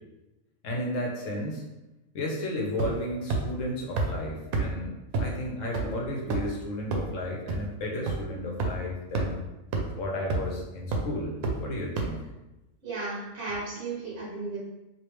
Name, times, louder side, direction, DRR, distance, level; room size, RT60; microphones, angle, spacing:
voice 1, 0.6-1.7 2.1-4.9 5.2-9.5 10.0-12.2, left 1 dB, 70° left, -1 dB, 1.1 m, -33 dB
sound 1, 2.8-3.0 3.3-3.4 4.0-4.1 4.5-4.6 5.1-5.2 5.7-5.8 6.3-6.5 6.9-7.0 7.5-7.6 8.1-8.2 8.6-8.7 9.1-9.3 9.7-9.8 10.3-10.5 10.9-11.0 11.4-11.5 12.0-12.1, right 4 dB, 90° right, 1.0 m, -26 dB
voice 2, 12.8-14.6, right 3 dB, 60° right, -7 dB, 1.2 m, -34 dB
3.3 x 2.8 x 3.0 m, 1.0 s
omnidirectional pair, 1.4 m